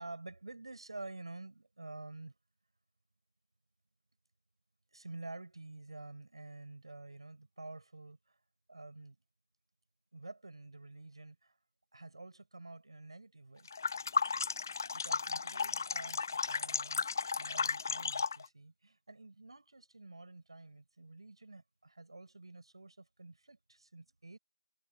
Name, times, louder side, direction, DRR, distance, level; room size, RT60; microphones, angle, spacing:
voice 1, 0.0-2.3 4.9-8.4 8.7-9.2 10.1-11.6 11.9-13.7 14.9-17.1 17.4-24.4, right 2 dB, 60° right, 6.2 m, -49 dB
sound 1, 13.7-18.5, left 5 dB, 35° left, 0.6 m, -34 dB
figure-of-eight pair, 160°, 3 cm